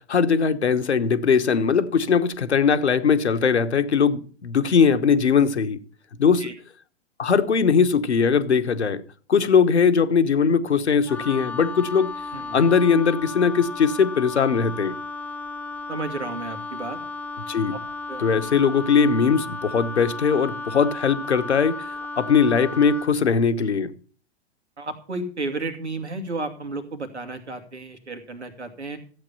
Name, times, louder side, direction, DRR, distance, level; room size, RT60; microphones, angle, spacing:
voice 1, 0.1-5.8 6.2-6.5 7.2-9.0 9.3-12.1 12.5-14.9 17.5-17.7 18.2-21.8 22.2-23.9, left 6 dB, 80° left, 1.2 m, -20 dB
Wind instrument woodwind instrument, 11.1-23.2, left 3 dB, 5° left, 0.8 m, -34 dB
voice 2, 15.9-17.0 18.1-18.2 24.8-29.0, right 3 dB, 85° right, 2.5 m, -32 dB
14.0 x 8.3 x 5.4 m
figure-of-eight pair, 110°, 33 cm